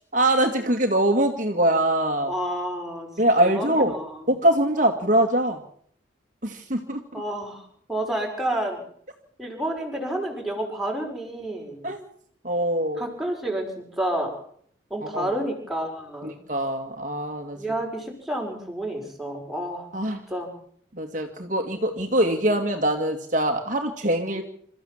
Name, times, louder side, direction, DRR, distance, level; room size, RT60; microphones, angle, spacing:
voice 1, 0.1-2.3 3.2-3.9 4.3-5.6 6.4-7.0 11.8-12.0 12.4-13.1 15.1-15.3 16.5-17.6 19.9-20.2 21.0-24.4, right 1 dB, 40° right, 4 dB, 2.1 m, -23 dB
voice 2, 2.2-3.1 3.4-4.3 7.1-8.8 9.4-11.8 12.9-14.3 14.9-16.3 17.5-19.9 20.3-20.5, right 1 dB, ahead, 0 dB, 5.2 m, -30 dB
27.5 x 14.5 x 7.4 m, 0.62 s
head